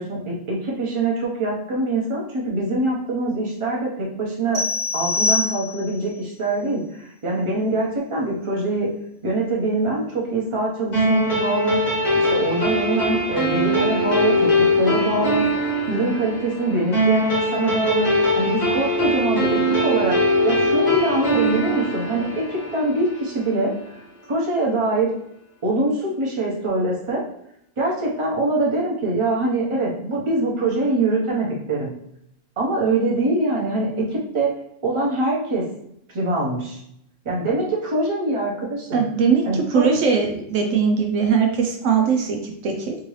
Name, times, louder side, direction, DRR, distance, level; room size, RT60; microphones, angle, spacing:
voice 1, 0.0-4.6 4.9-8.9 9.2-11.8 12.1-15.5 15.9-18.1 18.4-23.7 24.3-25.1 25.6-27.2 27.8-31.9 32.6-34.6 34.8-35.6 36.1-36.8 37.2-39.0 39.5-39.9, right 2 dB, 25° right, -3 dB, 0.8 m, -23 dB
sound 1, 4.5-6.1, left 3 dB, 55° right, 1.3 m, -24 dB
sound 2, 10.9-23.7, equal, 55° left, 1.4 m, -22 dB
voice 2, 38.9-39.5 39.7-43.0, right 6 dB, 75° right, 2 dB, 0.9 m, -20 dB
3.6 x 2.7 x 3.1 m, 0.74 s
omnidirectional pair, 1.3 m